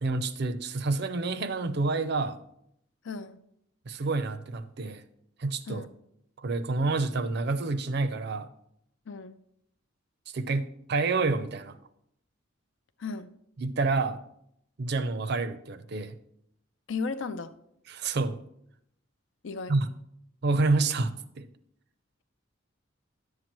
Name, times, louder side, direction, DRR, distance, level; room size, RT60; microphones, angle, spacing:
voice 1, 0.0-2.4 3.9-5.0 5.4-5.8 6.4-8.5 10.3-11.8 13.6-14.2 14.8-16.2 17.9-18.4 19.7-19.9 20.4-21.5, right 3 dB, 55° right, 0.5 m, -28 dB
voice 2, 3.0-3.4 5.7-5.9 9.1-9.4 13.0-13.3 16.9-17.5 19.4-19.7, left 4 dB, 65° left, 0.5 m, -35 dB
11.0 x 7.4 x 3.0 m
head